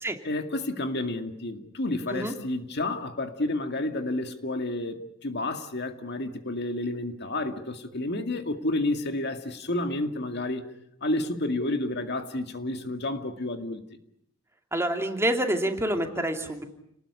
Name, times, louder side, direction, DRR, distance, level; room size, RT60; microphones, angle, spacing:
voice 1, 0.2-10.6 11.0-13.8, left 2 dB, 55° left, 2.2 m, -30 dB
voice 2, 14.7-16.6, right 1 dB, 15° right, 2.8 m, -27 dB
29.5 x 20.0 x 9.8 m
head